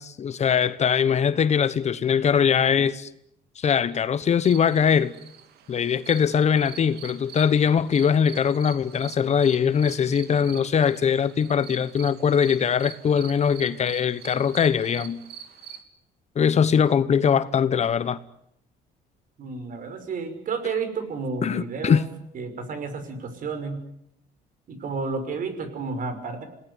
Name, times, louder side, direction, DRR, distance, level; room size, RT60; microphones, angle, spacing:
voice 1, 0.0-3.1 3.6-5.1 5.7-15.2 16.3-18.2 21.4-22.0, left 7 dB, 40° left, 1.1 m, -21 dB
sound 1, 4.4-15.8, right 8 dB, 75° right, 3.0 m, -44 dB
voice 2, 19.4-22.0 22.3-23.8 24.7-26.5, right 4 dB, 55° right, 5.7 m, -31 dB
27.5 x 18.5 x 9.7 m
cardioid pair, 110°, 17 cm